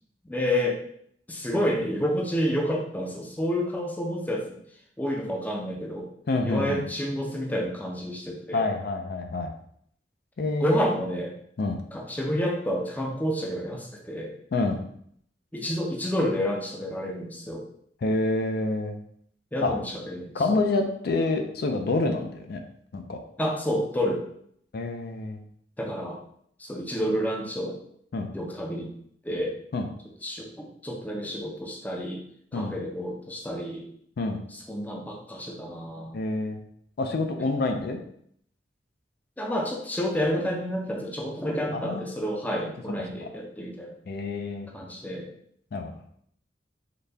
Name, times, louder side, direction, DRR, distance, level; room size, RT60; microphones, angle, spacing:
voice 1, 0.2-0.8 1.3-4.6 5.0-6.1 6.4-8.6 10.6-11.3 11.9-14.3 15.5-17.6 19.5-20.6 23.4-24.2 25.8-26.2 26.6-27.8 28.3-28.9 29.2-29.6 30.2-32.2 32.5-33.8 34.5-36.1 39.4-43.9 44.7-45.3, equal, 10° left, 0 dB, 0.5 m, -29 dB
voice 2, 6.3-6.9 8.5-9.5 10.4-10.8 11.6-11.8 14.5-14.8 18.0-19.0 19.6-19.7 20.3-22.6 22.9-23.2 24.7-25.4 28.1-28.3 29.7-29.9 32.5-32.7 34.2-34.4 36.1-36.6 37.0-38.0 41.7-42.1 43.2-43.3 44.1-44.7 45.7-45.9, left 2 dB, 60° left, 4 dB, 0.4 m, -27 dB
4.0 x 2.2 x 3.3 m, 0.67 s
head